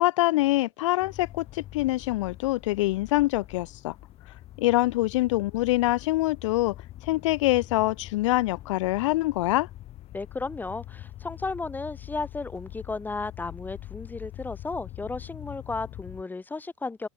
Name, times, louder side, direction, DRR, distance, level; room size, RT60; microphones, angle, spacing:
voice 1, 0.0-4.0 4.6-6.7 7.0-9.7, left 18 dB, 85° left, 0.4 m, -25 dB
sound 1, 1.0-16.2, left 14 dB, 40° left, 6.0 m, -44 dB
voice 2, 10.1-17.1, left 3 dB, 10° left, 4.5 m, -34 dB
supercardioid pair, 125°, 16 cm